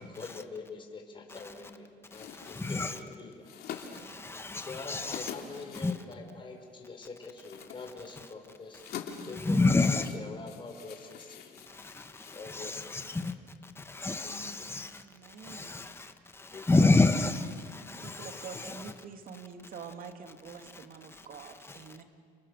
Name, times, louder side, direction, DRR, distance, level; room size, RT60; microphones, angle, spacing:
voice 1, 0.0-4.2 4.6-8.8 9.2-11.6 12.3-13.0 13.9-14.5 16.5-16.9, left 4 dB, 30° left, 2 dB, 4.8 m, -45 dB
sound 1, 2.0-13.0, left 7 dB, 65° left, 3.1 m, -47 dB
voice 2, 2.4-3.0 4.1-5.3 5.8-5.9 9.4-10.1 12.4-13.2 13.9-14.9 15.4-15.9 16.5-17.5 17.7-18.9, left 3 dB, 15° left, 7 dB, 1.4 m, -28 dB
voice 3, 14.9-15.8 18.0-22.0, right 5 dB, 55° right, 5 dB, 2.7 m, -46 dB
30.0 x 29.5 x 6.8 m, 2.1 s
cardioid pair, 110°, 17 cm